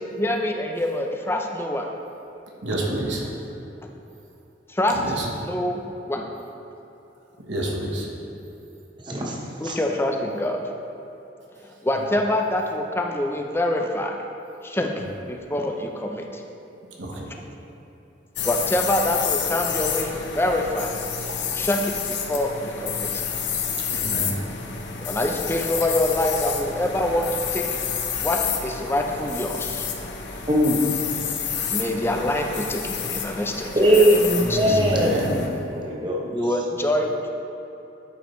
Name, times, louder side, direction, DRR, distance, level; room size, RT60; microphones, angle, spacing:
voice 1, 0.2-1.9 4.7-5.0 5.4-5.8 6.1-6.3 9.6-10.6 11.6-14.1 14.6-14.9 15.3-16.4 18.4-21.0 21.5-23.2 25.0-27.7 28.2-29.9 31.7-34.2 34.5-34.8 36.3-37.3, left 1 dB, 15° left, 2 dB, 0.5 m, -25 dB
voice 2, 2.6-3.3 4.9-5.3 7.5-8.1 14.9-15.0 17.0-17.3 21.3-21.4 23.9-24.4 34.4-35.5, right 1 dB, 85° right, -1 dB, 1.2 m, -28 dB
voice 3, 9.0-9.8 30.5-30.8 33.8-35.3 35.7-36.3, right 1 dB, 25° right, -2 dB, 0.9 m, -20 dB
sound 1, 18.4-35.5, left 7 dB, 75° left, 0.8 m, -29 dB
11.5 x 5.0 x 3.1 m, 3.0 s
head